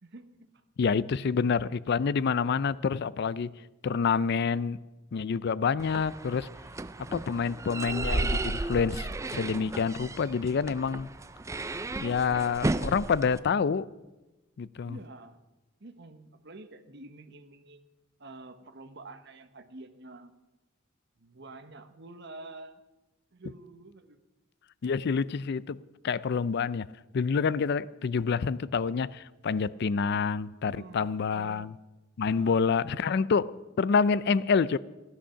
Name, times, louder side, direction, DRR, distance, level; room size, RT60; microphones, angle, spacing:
voice 1, 0.0-0.6 1.2-1.5 14.9-15.4 15.8-17.8 18.2-20.3 21.2-22.8 23.3-24.2 30.6-31.6 32.3-32.9, right 2 dB, 60° right, 1.1 m, -48 dB
voice 2, 0.8-3.5 3.8-4.8 5.1-6.5 7.1-11.1 12.0-13.9 14.6-15.0 24.8-26.9 27.1-31.7 32.2-34.8, left 5 dB, 55° left, 0.4 m, -27 dB
sound 1, 5.8-13.4, right 2 dB, 15° right, 0.4 m, -34 dB
15.5 x 11.5 x 5.7 m
head